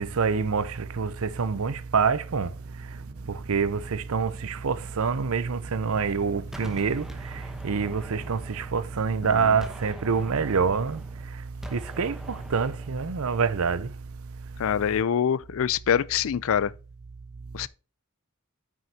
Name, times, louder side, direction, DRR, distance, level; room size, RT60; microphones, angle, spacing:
voice 1, 0.0-13.9, right 5 dB, 65° right, 0.6 m, -27 dB
sound 1, 2.3-11.2, right 1 dB, 25° right, 1.0 m, -52 dB
Gunshot gunfire, 6.5-9.2 9.6-13.1, equal, ahead, 1.0 m, -44 dB
voice 2, 9.2-9.6 14.6-16.7 17.5-17.7, left 8 dB, 65° left, 0.4 m, -25 dB
9.2 x 6.3 x 2.8 m
head